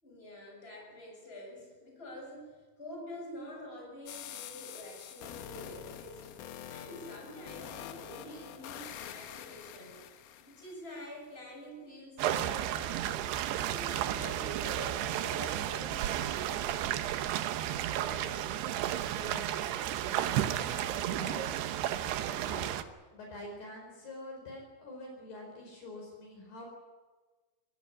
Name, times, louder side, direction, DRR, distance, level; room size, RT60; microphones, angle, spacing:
voice 1, 0.0-6.3 6.7-10.0 10.4-13.3 13.6-16.7, left 1 dB, 10° left, -1 dB, 7.1 m, -47 dB
sound 1, 4.1-11.0, left 10 dB, 70° left, 2.4 m, -46 dB
sound 2, 12.2-22.8, right 12 dB, 75° right, 2.6 m, -33 dB
voice 2, 17.9-21.6 22.1-22.8 23.1-26.7, left 1 dB, 55° left, 0 dB, 6.3 m, -47 dB
24.0 x 16.5 x 9.7 m, 1.3 s
omnidirectional pair, 5.8 m